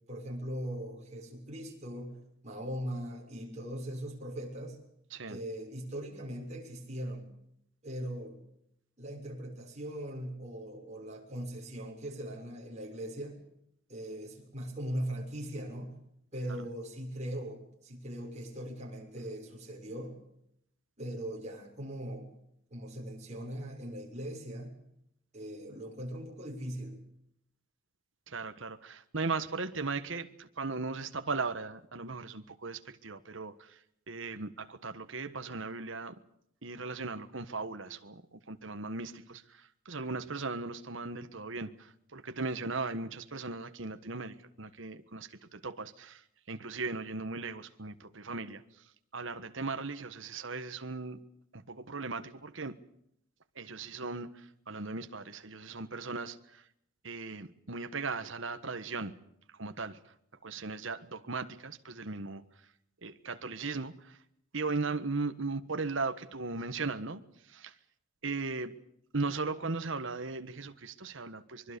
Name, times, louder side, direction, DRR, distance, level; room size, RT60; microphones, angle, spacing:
voice 1, 0.1-2.2 2.4-4.8 5.3-7.2 7.8-8.4 9.0-13.4 13.9-15.9 16.3-20.2 21.0-22.3 22.7-24.7 25.3-27.0, equal, 35° right, 6.7 m, -40 dB
voice 2, 28.3-33.5 34.1-36.1 36.6-39.4 39.8-41.7 42.1-46.2 46.5-48.6 49.1-51.2 51.5-52.7 53.6-54.3 54.7-56.4 57.0-59.1 59.6-60.0 60.4-62.4 63.0-63.9 64.5-67.2 67.5-67.7 68.2-68.7 69.1-71.8, right 3 dB, 70° right, 1.4 m, -37 dB
24.5 x 23.0 x 6.9 m
head